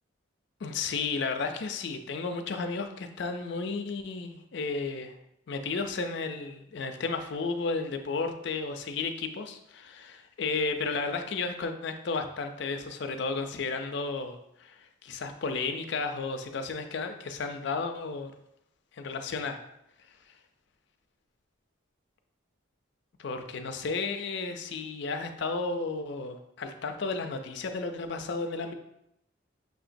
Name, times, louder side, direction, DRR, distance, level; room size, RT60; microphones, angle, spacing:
voice 1, 0.6-5.2 5.5-18.3 18.9-19.6 23.2-28.7, left 4 dB, 60° left, 6 dB, 0.4 m, -33 dB
6.2 x 2.9 x 2.6 m, 0.79 s
head